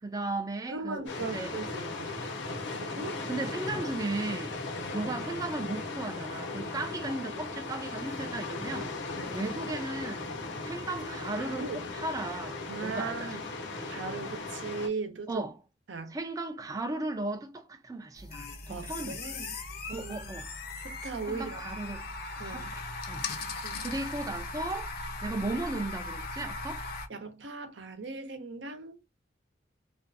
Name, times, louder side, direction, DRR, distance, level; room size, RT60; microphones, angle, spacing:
voice 1, 0.0-1.5 3.0-4.5 4.9-8.9 9.3-10.3 10.6-13.4 15.3-15.6 16.1-19.2 19.9-20.5 21.3-22.1 22.4-23.3 23.8-24.9 25.2-26.8, right 2 dB, 20° right, 0.4 m, -36 dB
voice 2, 0.7-2.1 2.4-3.2 4.8-5.0 9.1-9.4 11.4-11.9 12.7-13.4 13.9-15.4 15.9-16.1 18.7-19.6 19.9-20.3 20.8-21.6 22.4-22.8 23.6-23.9 27.1-29.0, right 4 dB, 80° right, 0.7 m, -38 dB
sound 1, 1.1-14.9, left 3 dB, 85° left, 1.0 m, -37 dB
sound 2, 18.2-27.1, left 3 dB, 55° left, 0.6 m, -38 dB
2.5 x 2.3 x 2.5 m
head